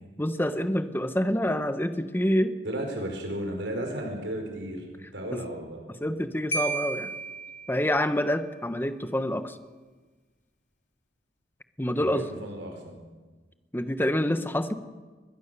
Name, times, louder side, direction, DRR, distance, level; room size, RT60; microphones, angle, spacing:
voice 1, 0.2-2.5 5.3-5.4 6.0-7.1 7.7-9.6 11.8-12.3 13.7-14.7, left 1 dB, 10° left, 9 dB, 1.2 m, -27 dB
voice 2, 2.6-4.8 5.1-5.8 12.0-13.0, right 1 dB, 80° right, 3 dB, 5.1 m, -34 dB
Marimba xylophone, 6.5-8.3, right 3 dB, 85° left, 2.3 m, -33 dB
22.5 x 21.0 x 7.0 m, 1.3 s
head